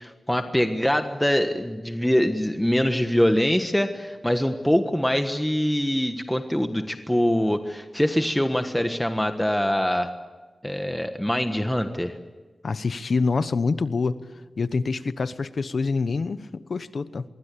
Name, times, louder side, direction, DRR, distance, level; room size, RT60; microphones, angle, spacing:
voice 1, 0.0-10.1 10.6-12.2, equal, 5° left, 6 dB, 1.4 m, -24 dB
voice 2, 12.6-14.2 14.6-17.2, left 4 dB, 70° left, 13 dB, 1.0 m, -26 dB
25.0 x 23.0 x 8.4 m, 1.3 s
wide cardioid pair, 95°, 0 cm